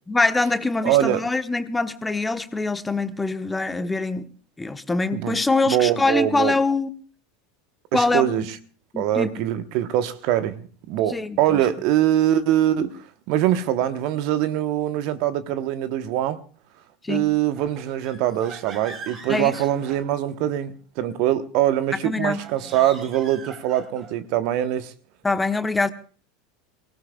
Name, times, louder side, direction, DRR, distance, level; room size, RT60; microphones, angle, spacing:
voice 1, 0.1-4.3 4.6-6.9 7.9-8.5 8.9-9.3 11.1-11.6 17.0-17.3 19.3-19.5 22.0-22.4 25.2-25.9, left 3 dB, 10° left, 10 dB, 1.1 m, -24 dB
voice 2, 0.8-1.2 5.1-5.4 5.7-6.6 7.9-8.6 9.0-16.4 17.1-24.9, right 12 dB, 50° right, 11 dB, 1.1 m, -23 dB
sound 1, 17.5-20.6 22.2-24.3, right 4 dB, 35° right, 2.9 m, -42 dB
25.0 x 18.0 x 2.4 m, 0.40 s
figure-of-eight pair, 80°, 0 cm